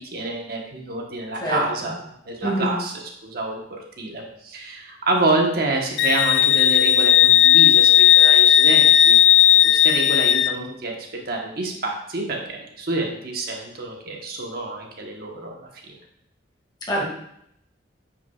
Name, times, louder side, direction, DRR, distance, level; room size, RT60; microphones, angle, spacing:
voice 1, 0.1-2.0 2.2-2.9 3.2-9.2 9.6-16.0, right 2 dB, 55° right, 0 dB, 1.1 m, -27 dB
voice 2, 2.4-2.8 16.9-17.0, equal, 25° left, -3 dB, 2.1 m, -24 dB
Wind instrument woodwind instrument, 6.0-10.5, left 11 dB, 75° left, 0.4 m, -15 dB
9.5 x 5.9 x 2.4 m, 0.76 s
head